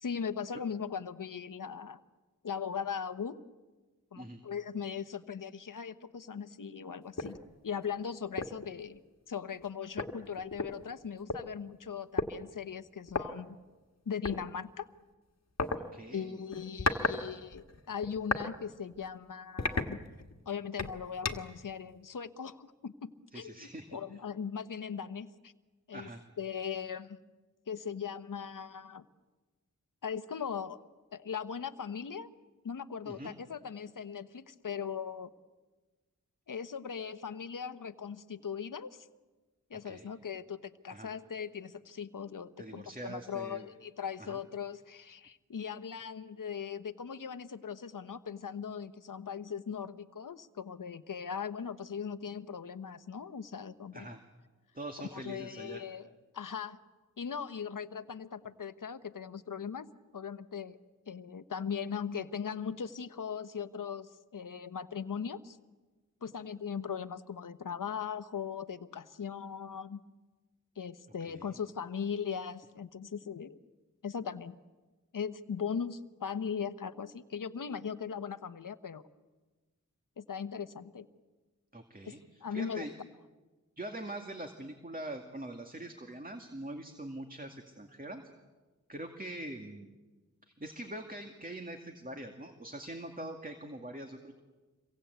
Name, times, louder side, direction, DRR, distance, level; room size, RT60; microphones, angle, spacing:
voice 1, 0.0-2.0 2.4-3.4 4.1-7.4 7.6-9.0 9.3-13.6 14.1-14.9 16.1-20.0 20.5-25.5 25.9-26.1 26.4-27.2 27.7-29.0 30.0-30.8 31.1-32.3 32.6-35.3 36.5-39.1 39.7-54.2 55.0-56.8 57.2-59.9 60.1-60.8 61.1-65.6 66.2-70.0 70.8-73.6 74.0-74.6 75.1-79.0 80.2-81.1 82.0-82.1 82.4-82.9, left 7 dB, 90° left, 12 dB, 1.1 m, -39 dB
sound 1, 7.2-7.4 7.8-7.9 8.4-8.6 9.6-9.7 10.0-11.4 12.2-12.3 13.1-13.2 14.2-14.4 15.6-15.8 16.5-17.2 17.5-18.5 18.9-19.1 19.6-20.4 20.8-21.6, left 3 dB, 55° left, 1.6 m, -33 dB
voice 2, 15.8-16.4 23.3-23.9 25.9-26.2 33.0-33.4 39.7-40.1 40.9-41.1 42.6-43.7 44.2-44.4 53.9-54.2 54.7-55.8 71.2-71.6 81.7-82.9 83.8-88.2 88.9-89.9 90.4-94.3, right 1 dB, 30° right, 4 dB, 2.2 m, -43 dB
27.5 x 23.5 x 8.2 m, 1.2 s
wide cardioid pair, 70°, 31 cm